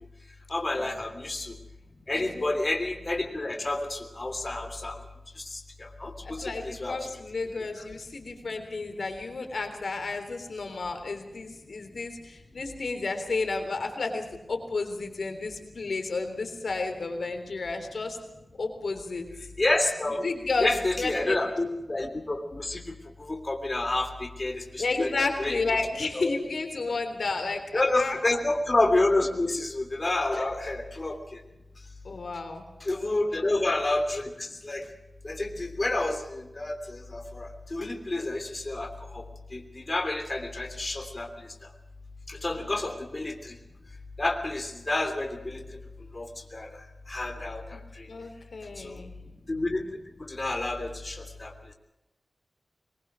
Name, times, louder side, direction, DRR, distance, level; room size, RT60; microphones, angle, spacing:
voice 1, 0.5-1.5 2.1-5.0 5.5-5.6 6.0-7.0 19.6-20.2 20.6-22.8 23.2-25.6 26.1-26.4 27.7-31.4 32.8-34.8 35.2-39.2 39.5-41.3 42.3-43.5 44.2-45.6 46.1-46.3 46.5-46.7 47.1-48.1 48.8-48.9 49.5-49.9 50.2-51.5, left 2 dB, 35° left, 4 dB, 3.1 m, -29 dB
voice 2, 2.1-2.5 6.2-18.2 18.6-19.3 20.2-21.4 24.8-28.2 30.4-30.5 32.0-32.6 33.1-33.7 42.5-42.7 48.1-49.1, left 3 dB, 75° left, 5 dB, 3.5 m, -32 dB
22.5 x 21.5 x 6.3 m, 0.97 s
wide cardioid pair, 80°, 0 cm